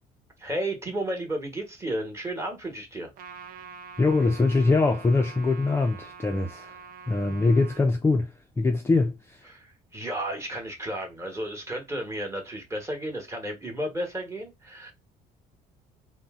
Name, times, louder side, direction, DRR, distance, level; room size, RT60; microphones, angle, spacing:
voice 1, 0.4-3.1 9.5-14.9, right 1 dB, 15° right, 1.1 m, -33 dB
Trumpet, 3.2-7.9, right 5 dB, 60° right, 0.5 m, -45 dB
voice 2, 4.0-6.8 7.1-9.5, left 3 dB, 15° left, 0.4 m, -23 dB
2.6 x 2.1 x 3.5 m
cardioid pair, 110°, 17 cm